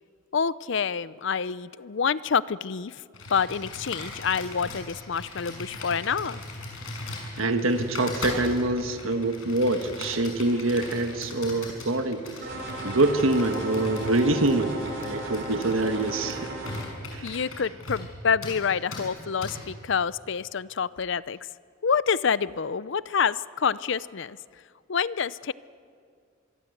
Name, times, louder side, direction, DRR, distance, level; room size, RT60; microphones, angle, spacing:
voice 1, 0.3-2.9 3.3-6.4 17.2-21.4 21.8-24.4 24.9-25.5, left 6 dB, 60° left, 18 dB, 0.6 m, -27 dB
Computer keyboard, 3.1-18.1 18.4-18.6 18.9-19.1 19.4-19.6, left 2 dB, 80° left, 6.2 m, -39 dB
voice 2, 7.4-16.5 17.1-17.4, right 2 dB, 80° right, 6 dB, 1.5 m, -25 dB
sound 1, 12.4-16.8, right 1 dB, 55° right, 4.6 m, -36 dB
25.5 x 23.5 x 7.9 m, 2.2 s
head